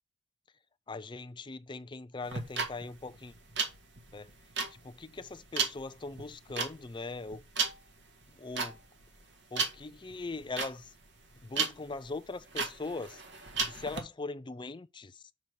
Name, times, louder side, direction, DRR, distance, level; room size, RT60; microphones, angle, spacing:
voice 1, 0.9-3.3 4.1-4.3 4.7-7.4 8.3-8.8 9.5-10.9 11.4-13.2 13.6-15.3, left 3 dB, 25° left, 0.5 m, -41 dB
sound 1, 2.2-14.0, right 5 dB, 60° right, 1.8 m, -35 dB
5.8 x 5.4 x 6.5 m
head